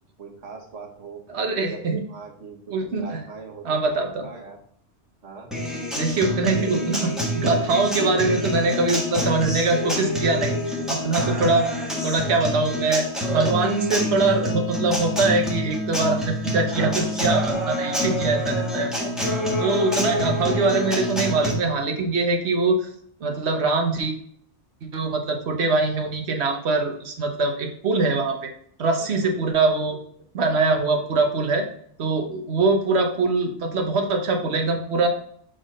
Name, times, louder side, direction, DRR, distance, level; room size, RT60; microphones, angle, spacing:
voice 1, 0.2-1.2 1.7-4.6 5.2-5.5 8.1-8.7 11.1-11.4 29.0-29.8, right 4 dB, 90° right, 0 dB, 1.6 m, -41 dB
voice 2, 1.3-2.0 2.7-3.2 3.6-4.3 5.9-11.7 12.0-18.9 19.6-22.9 23.2-24.1 24.8-28.5 28.8-30.0 30.3-31.7 32.0-35.1, right 3 dB, 70° right, 4 dB, 1.3 m, -23 dB
Acoustic guitar, 5.5-21.5, equal, ahead, 1.4 m, -27 dB
7.1 x 3.9 x 3.9 m, 0.63 s
omnidirectional pair, 1.2 m